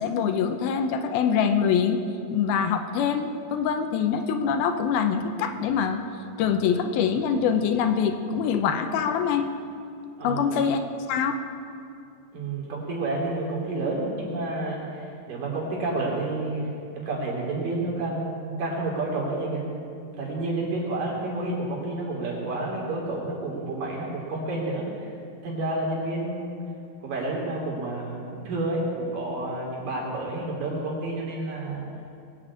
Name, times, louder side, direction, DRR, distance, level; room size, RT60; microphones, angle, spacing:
voice 1, 0.0-2.0 2.3-6.0 6.4-9.5 10.2-10.8 11.1-11.3, left 7 dB, 80° left, 7 dB, 2.6 m, -24 dB
voice 2, 10.2-10.6 12.3-16.7 17.0-19.6 20.0-25.1 25.4-26.6 27.0-31.8, right 2 dB, 60° right, -3 dB, 4.7 m, -30 dB
21.0 x 7.3 x 8.5 m, 2.5 s
omnidirectional pair, 4.5 m